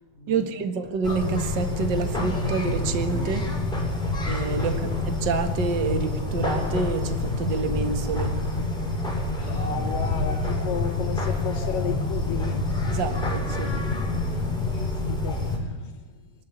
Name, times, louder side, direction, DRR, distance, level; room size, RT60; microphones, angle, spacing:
voice 1, 0.3-3.5 4.3-8.4 12.9-14.7, right 5 dB, 40° right, 1.9 m, -28 dB
sound 1, 1.0-15.6, left 2 dB, ahead, 6.5 m, -27 dB
voice 2, 9.4-12.7 14.7-16.0, left 9 dB, 75° left, 4.7 m, -34 dB
23.5 x 13.0 x 9.7 m
omnidirectional pair, 3.8 m